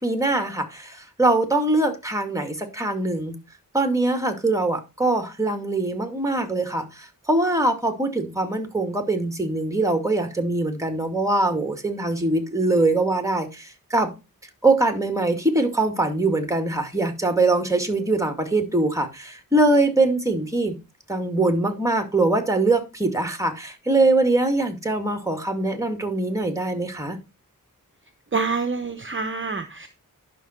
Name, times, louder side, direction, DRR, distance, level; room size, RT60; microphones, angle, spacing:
voice 1, 0.0-3.4 3.7-14.1 14.6-20.7 21.1-27.2, right 2 dB, 10° right, 2.2 m, -22 dB
voice 2, 28.3-29.9, right 4 dB, 35° right, 0.9 m, -26 dB
11.0 x 6.1 x 4.4 m
wide cardioid pair, 90°, 34 cm